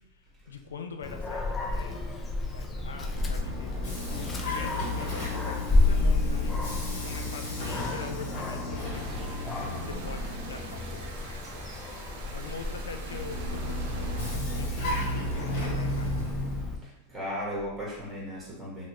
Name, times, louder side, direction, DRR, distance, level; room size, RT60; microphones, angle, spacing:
voice 1, 0.1-9.3 9.8-11.7 12.3-16.2, left 5 dB, 90° left, 6 dB, 0.4 m, -43 dB
Dog, 1.0-16.7, left 2 dB, 20° left, 0.5 m, -31 dB
Vehicle, 2.7-11.2 12.9-16.8, left 1 dB, 65° left, 1.4 m, -35 dB
voice 2, 3.9-4.3 16.8-18.9, equal, 5° right, -6 dB, 1.4 m, -37 dB
sound 1, 8.9-14.4, right 3 dB, 60° right, 0.7 m, -45 dB
2.9 x 2.6 x 2.9 m, 0.88 s
hypercardioid pair, 105°, 0 cm